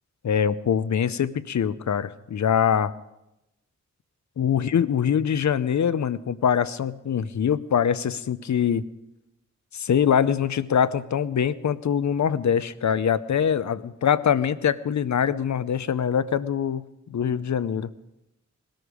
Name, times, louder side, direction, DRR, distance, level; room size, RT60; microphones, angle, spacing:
voice 1, 0.2-2.9 4.4-8.8 9.7-17.9, left 8 dB, 75° left, 15 dB, 0.7 m, -23 dB
20.5 x 13.0 x 5.0 m, 0.90 s
wide cardioid pair, 130°, 29 cm